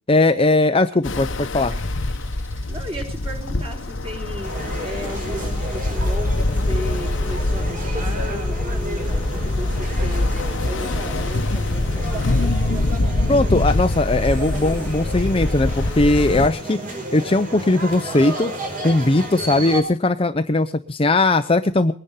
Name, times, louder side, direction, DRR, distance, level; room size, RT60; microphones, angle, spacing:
voice 1, 0.1-1.8 13.3-16.8 17.1-18.5 18.8-21.9, left 2 dB, 30° left, 9 dB, 0.7 m, -19 dB
sound 1, 0.8-1.0 1.4-16.4, left 3 dB, 10° right, 2.4 m, -44 dB
Ocean, 1.0-16.5, left 2 dB, 65° left, 1.0 m, -24 dB
voice 2, 2.5-12.9, equal, 30° right, 2 dB, 4.3 m, -35 dB
sound 2, 4.4-19.8, right 1 dB, 45° right, 5.2 m, -32 dB
21.5 x 10.5 x 5.7 m, 0.38 s
head